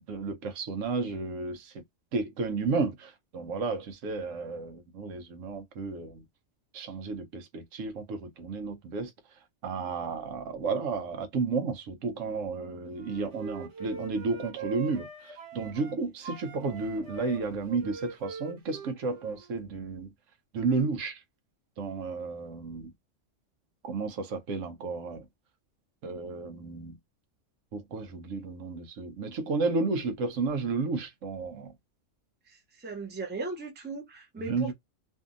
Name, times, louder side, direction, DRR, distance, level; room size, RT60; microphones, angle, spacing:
voice 1, 0.1-1.7 2.1-6.2 6.7-9.1 9.6-20.1 20.5-21.2 21.8-22.9 23.8-25.2 26.0-26.9 27.7-31.7 34.5-34.7, right 4 dB, 85° right, 1.1 m, -32 dB
Wind instrument woodwind instrument, 12.9-16.0 16.2-19.5, right 5 dB, 65° right, 1.3 m, -43 dB
voice 2, 32.8-34.7, right 3 dB, 10° right, 0.5 m, -37 dB
2.7 x 2.6 x 2.4 m
omnidirectional pair, 1.3 m